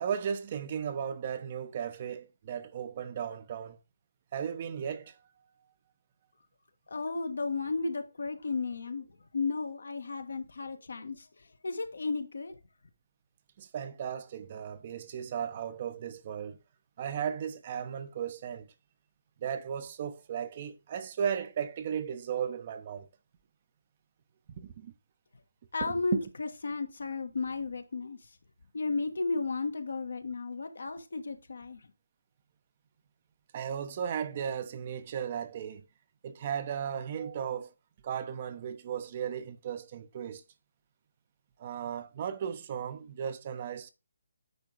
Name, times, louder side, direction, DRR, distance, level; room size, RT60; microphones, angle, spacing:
voice 1, 0.0-3.8 4.3-5.1 13.6-16.6 17.0-18.7 19.4-23.1 24.6-24.9 25.8-26.2 33.5-35.8 36.2-37.7 38.0-40.4 41.6-43.9, right 8 dB, 40° right, 0.9 m, -35 dB
voice 2, 6.9-9.1 9.3-12.6 25.7-28.2 28.7-31.8, left 4 dB, 70° left, 1.4 m, -34 dB
9.5 x 3.7 x 4.8 m
figure-of-eight pair, 145°, 0 cm